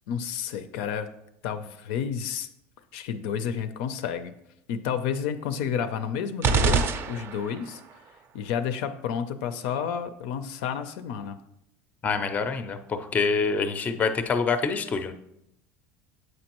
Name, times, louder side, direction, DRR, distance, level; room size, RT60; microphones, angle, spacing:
voice 1, 0.1-1.1 1.4-2.5 2.9-4.3 4.7-7.8 8.3-11.4, left 7 dB, 75° left, 10 dB, 0.5 m, -30 dB
sound 1, 6.4-7.7, right 5 dB, 35° right, 0.4 m, -24 dB
voice 2, 12.0-15.1, left 5 dB, 25° left, 9 dB, 0.5 m, -26 dB
7.7 x 5.2 x 2.9 m, 0.81 s
cardioid pair, 135°, 6 cm